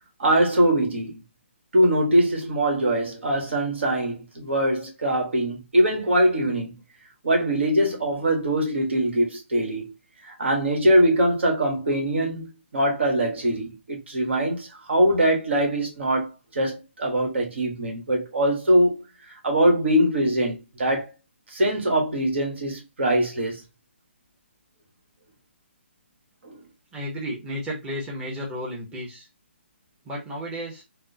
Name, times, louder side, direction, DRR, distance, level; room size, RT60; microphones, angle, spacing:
voice 1, 0.2-1.2 1.7-6.7 7.2-9.9 10.2-19.0 19.4-21.1 21.5-23.6 26.4-26.6, right 1 dB, 65° right, 1.3 m, -22 dB
voice 2, 26.9-29.3 30.0-30.8, equal, 10° right, 0.8 m, -33 dB
3.4 x 2.0 x 2.7 m
hypercardioid pair, 150°, 7 cm